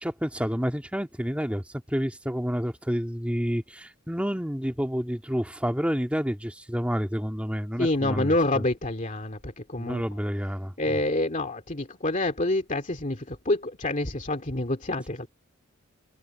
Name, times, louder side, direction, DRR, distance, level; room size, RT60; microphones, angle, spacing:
voice 1, 0.0-8.6 9.8-11.0, equal, 5° right, 1.9 m, -29 dB
voice 2, 7.8-10.0 10.8-15.3, left 2 dB, 35° left, 2.3 m, -27 dB
head